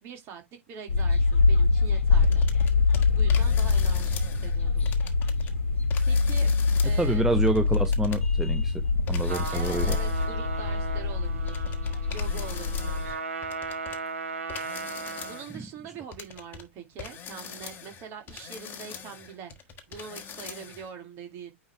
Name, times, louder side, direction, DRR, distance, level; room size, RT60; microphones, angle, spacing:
voice 1, 0.0-2.4 3.1-4.9 6.0-6.5 6.8-7.3 9.5-11.6 12.1-13.2 15.2-19.5 19.9-21.5, right 6 dB, 40° right, 2.6 m, -43 dB
sound 1, 0.9-13.1, left 4 dB, 80° left, 1.5 m, -24 dB
sound 2, 2.2-4.6 4.8-5.5 5.9-8.2 9.1-10.3 11.5-14.0 14.5-15.6 16.1-16.6 17.0-20.9, left 7 dB, 25° left, 1.5 m, -42 dB
voice 2, 7.0-8.7 9.1-9.9, right 2 dB, 5° right, 0.9 m, -27 dB
Trumpet, 9.2-15.5, right 4 dB, 75° right, 1.6 m, -37 dB
9.2 x 3.4 x 3.3 m
figure-of-eight pair, 100°, 7 cm